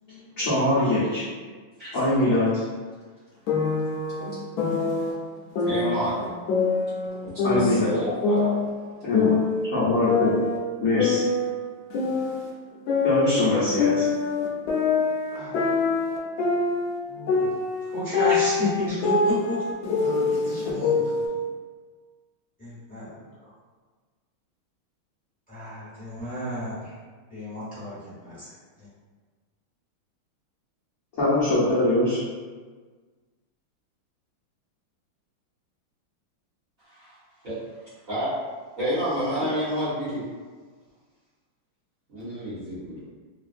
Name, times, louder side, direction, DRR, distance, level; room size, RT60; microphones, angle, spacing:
voice 1, 0.1-1.2 1.9-2.6 7.4-7.9 9.0-9.3 9.7-10.3 10.8-11.2 13.0-14.1 31.2-32.2, left 1 dB, 65° left, -11 dB, 0.8 m, -23 dB
sound 1, 3.5-5.1 5.6-7.1 7.4-9.6 10.1-12.5 12.9-17.0 17.3-21.3, left 4 dB, 90° left, 0.8 m, -25 dB
voice 2, 5.6-6.1 7.5-8.6 36.8-37.1 37.4-37.6 38.1-38.3 38.8-40.2 42.1-43.0, equal, 45° right, -12 dB, 1.4 m, -29 dB
voice 3, 15.3-15.7 17.0-17.5 17.9-19.6 20.0-21.4 22.6-23.5 25.5-26.9 27.3-28.5 28.8-28.9, left 1 dB, 5° left, -12 dB, 0.9 m, -32 dB
3.4 x 2.3 x 2.5 m, 1.4 s
omnidirectional pair, 2.3 m